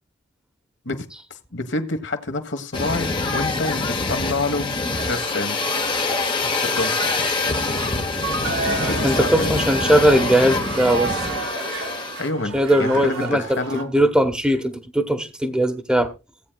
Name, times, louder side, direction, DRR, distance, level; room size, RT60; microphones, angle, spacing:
voice 1, 0.8-4.7 5.1-5.6 6.6-7.1 8.8-9.5 12.2-13.9, left 2 dB, 60° left, 1.4 m, -28 dB
sound 1, 2.7-12.3, left 3 dB, 25° left, 1.0 m, -25 dB
sound 2, 4.9-13.8, right 4 dB, 75° right, 1.9 m, -31 dB
voice 2, 9.0-11.2 12.5-13.6 13.9-16.1, right 1 dB, 5° right, 1.0 m, -19 dB
17.0 x 8.9 x 2.3 m
head